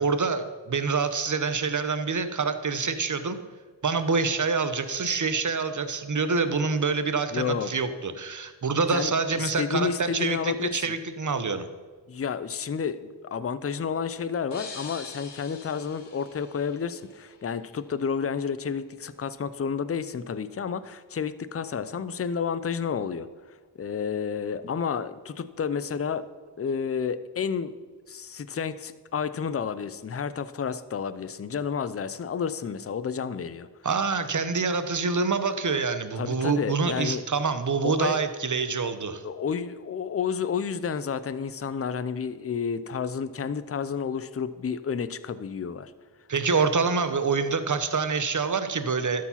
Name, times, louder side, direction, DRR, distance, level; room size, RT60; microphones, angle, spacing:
voice 1, 0.0-3.4 3.8-11.7 33.8-39.2 46.3-49.3, right 4 dB, 45° right, 10 dB, 0.7 m, -26 dB
voice 2, 7.3-7.7 8.9-10.8 12.1-26.2 26.6-27.7 28.1-33.7 36.2-37.2 37.8-38.2 39.2-45.9, left 6 dB, 35° left, 14 dB, 0.4 m, -30 dB
sound 1, 14.5-17.3, left 4 dB, 70° left, 1.1 m, -43 dB
12.0 x 4.7 x 5.7 m, 1.4 s
wide cardioid pair, 65°, 44 cm